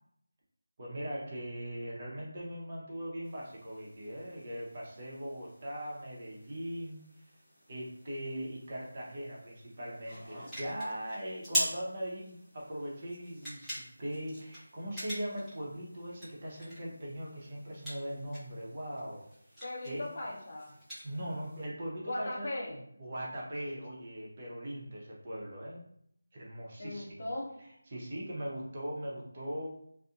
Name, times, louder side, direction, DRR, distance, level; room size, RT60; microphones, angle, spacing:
voice 1, 0.8-7.0 7.7-19.2 19.8-20.1 21.0-22.5 23.0-25.8 26.3-27.1 27.9-29.7, equal, 35° right, -4 dB, 0.7 m, -40 dB
sound 1, 3.2-21.6, equal, ahead, 0.8 m, -44 dB
voice 2, 19.6-20.7 22.0-22.8 26.8-27.6, left 1 dB, 50° left, -2 dB, 0.7 m, -38 dB
2.5 x 2.5 x 2.4 m, 0.71 s
figure-of-eight pair, 165°, 0 cm